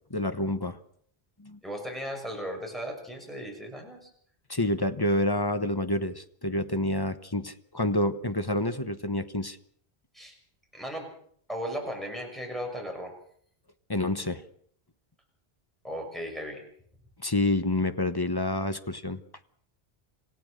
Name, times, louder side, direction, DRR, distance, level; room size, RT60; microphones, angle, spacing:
voice 1, 0.1-0.8 1.4-1.6 4.5-9.6 13.9-14.4 17.2-19.2, left 1 dB, 20° left, 10 dB, 1.0 m, -28 dB
voice 2, 1.6-4.1 10.1-10.3 10.7-11.1 11.5-13.1 15.8-16.6, equal, ahead, 1 dB, 6.5 m, -36 dB
27.5 x 16.5 x 6.5 m, 0.63 s
omnidirectional pair, 1.1 m